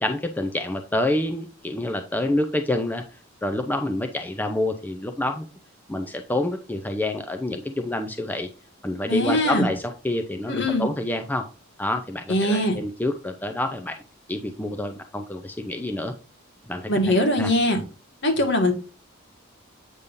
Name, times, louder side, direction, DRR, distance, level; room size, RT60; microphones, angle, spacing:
voice 1, 0.0-3.0 3.4-5.5 5.9-8.5 8.8-11.5 11.8-14.0 14.3-16.1 16.7-16.9 17.2-17.5, left 1 dB, 10° left, 6 dB, 0.5 m, -27 dB
voice 2, 9.1-9.7 10.5-10.9 12.3-12.8 16.9-17.8 18.2-18.7, left 1 dB, 60° left, 4 dB, 1.8 m, -21 dB
8.2 x 5.3 x 2.6 m, 0.34 s
head